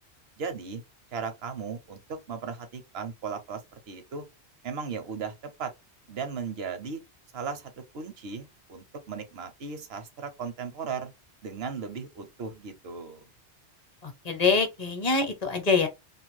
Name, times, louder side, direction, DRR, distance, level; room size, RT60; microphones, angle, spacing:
voice 1, 0.4-0.8 1.1-4.2 4.6-5.7 6.1-7.0 7.3-11.1 11.4-13.3, right 5 dB, 65° right, 1.0 m, -36 dB
voice 2, 14.0-15.9, left 4 dB, 40° left, 0.9 m, -25 dB
2.8 x 2.5 x 3.1 m
omnidirectional pair, 1.2 m